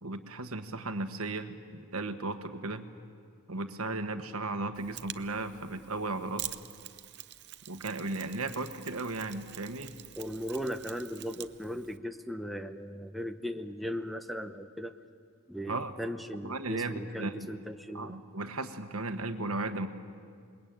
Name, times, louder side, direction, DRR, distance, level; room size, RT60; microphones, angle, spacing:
voice 1, 0.0-2.9 3.5-6.5 7.7-9.9 15.7-15.9 16.4-17.5 17.9-19.9, right 2 dB, 70° right, 8 dB, 1.4 m, -35 dB
Mechanisms, 4.7-12.0, right 14 dB, 50° right, 0.7 m, -46 dB
voice 2, 10.2-14.9 15.5-18.2, equal, ahead, 8 dB, 0.7 m, -38 dB
27.5 x 21.5 x 9.0 m, 2.2 s
head